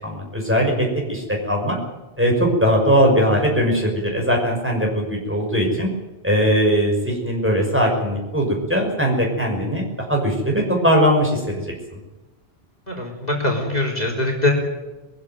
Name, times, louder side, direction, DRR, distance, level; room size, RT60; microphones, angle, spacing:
voice 1, 0.0-1.8 2.2-5.9 6.2-11.6, equal, 10° right, 0 dB, 6.1 m, -20 dB
voice 2, 12.9-14.5, left 2 dB, 40° left, 1 dB, 4.2 m, -22 dB
22.0 x 15.5 x 9.3 m, 1.1 s
omnidirectional pair, 1.1 m